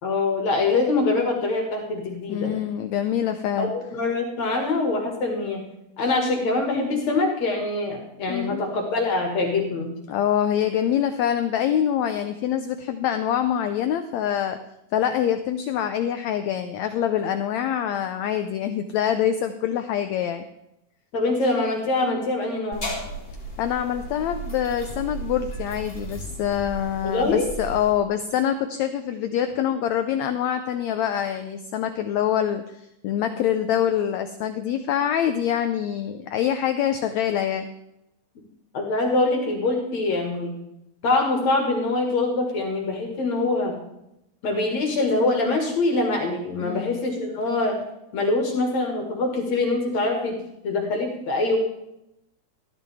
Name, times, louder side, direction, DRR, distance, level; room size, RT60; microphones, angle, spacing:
voice 1, 0.0-2.5 3.6-5.6 6.0-9.9 21.1-22.9 27.0-27.5 38.7-40.5 41.0-43.7 44.4-47.8 48.1-50.4 50.6-51.6, left 2 dB, 55° left, 1 dB, 3.0 m, -24 dB
voice 2, 2.3-3.7 8.3-8.6 10.1-14.6 14.9-20.4 23.6-37.7 46.6-47.0, left 9 dB, 80° left, 9 dB, 1.6 m, -25 dB
sound 1, 22.7-27.9, right 1 dB, 15° left, 3.5 m, -35 dB
15.0 x 13.0 x 3.5 m, 0.84 s
omnidirectional pair, 3.9 m